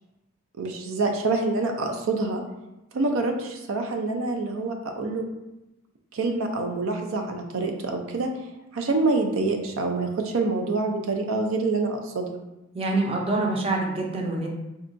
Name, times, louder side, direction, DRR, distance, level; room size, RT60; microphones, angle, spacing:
voice 1, 0.6-2.4 2.9-5.2 6.1-8.3 8.7-12.3, right 3 dB, 85° right, 3 dB, 0.4 m, -26 dB
voice 2, 12.7-14.5, right 2 dB, 30° right, 0 dB, 0.5 m, -25 dB
3.8 x 2.2 x 2.5 m, 0.95 s
head